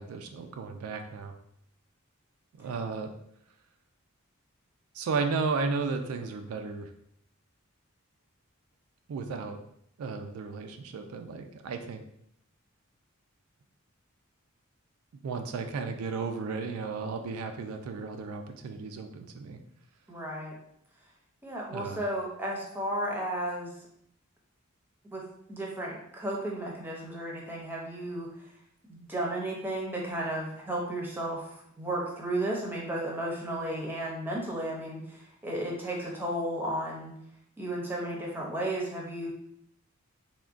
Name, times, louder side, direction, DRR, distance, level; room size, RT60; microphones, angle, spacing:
voice 1, 0.0-1.3 2.6-3.1 4.9-6.9 9.1-9.6 10.0-12.0 15.2-19.6 21.7-22.0, right 4 dB, 90° right, 6 dB, 0.3 m, -34 dB
voice 2, 20.1-20.5 21.4-23.7 25.0-25.2 25.5-28.5 28.9-37.1 37.6-39.3, right 1 dB, 10° right, -2 dB, 0.5 m, -34 dB
3.5 x 2.2 x 2.4 m, 0.71 s
head